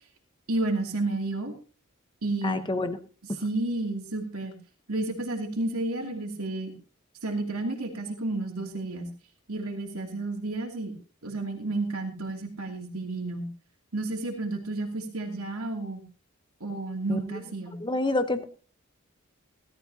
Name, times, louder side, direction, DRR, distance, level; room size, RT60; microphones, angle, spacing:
voice 1, 0.5-1.5 2.2-2.6 3.4-4.5 4.9-6.7 7.2-9.1 9.5-10.9 11.2-13.5 13.9-16.0 16.6-17.8, right 2 dB, 85° right, 1 dB, 2.7 m, -31 dB
voice 2, 2.4-3.0 17.1-17.2 17.8-18.4, left 2 dB, 20° left, 10 dB, 1.0 m, -27 dB
18.0 x 13.0 x 2.9 m, 0.37 s
head